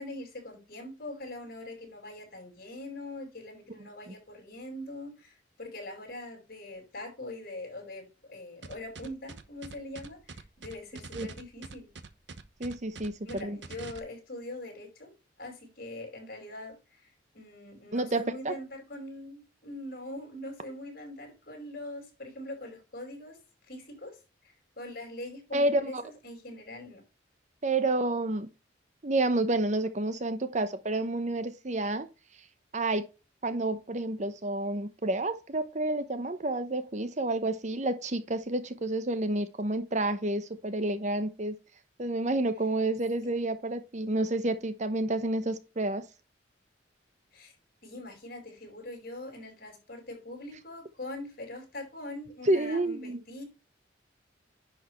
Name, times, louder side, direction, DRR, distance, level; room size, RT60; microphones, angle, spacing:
voice 1, 0.0-11.9 13.2-15.1 15.4-23.4 23.6-27.0 47.3-47.5 47.8-53.4, left 1 dB, 50° left, 5.2 m, -42 dB
sound 1, 8.6-14.0, right 4 dB, 65° right, 1.1 m, -44 dB
voice 2, 12.6-13.6 17.9-18.6 25.5-26.0 27.6-28.5 29.0-32.1 32.7-33.0 33.4-41.6 42.0-46.0 52.5-53.2, right 2 dB, 40° right, 0.9 m, -29 dB
10.5 x 6.4 x 3.1 m
head